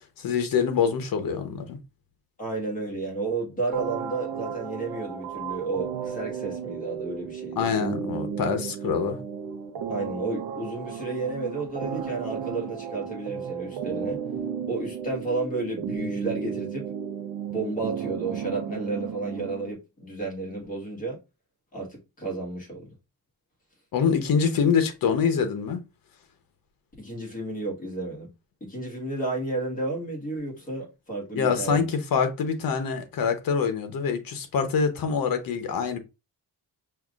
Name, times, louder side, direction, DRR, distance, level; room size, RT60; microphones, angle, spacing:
voice 1, 0.2-1.8 7.6-9.2 23.9-25.8 31.3-36.0, left 6 dB, 60° left, 0.9 m, -25 dB
voice 2, 2.4-7.7 9.9-14.2 14.7-16.9 17.5-21.2 21.7-22.9 27.0-28.3 28.6-31.9, right 3 dB, 20° left, 1.4 m, -32 dB
sound 1, 3.7-19.7, right 7 dB, 80° right, 0.6 m, -34 dB
5.6 x 2.4 x 2.4 m
wide cardioid pair, 175°, 38 cm